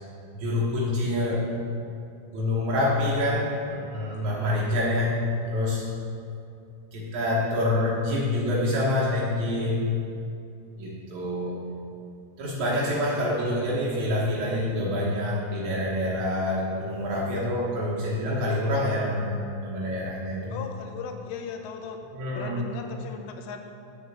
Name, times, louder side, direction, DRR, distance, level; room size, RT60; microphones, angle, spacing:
voice 1, 0.3-1.5 2.3-5.2 5.5-5.8 6.9-9.8 10.8-11.6 12.4-20.6 22.1-22.6, left 1 dB, 75° right, -5 dB, 1.7 m, -26 dB
voice 2, 20.5-22.0 22.4-23.6, left 6 dB, 80° left, 4 dB, 2.8 m, -37 dB
8.3 x 6.5 x 7.2 m, 2.6 s
omnidirectional pair, 5.0 m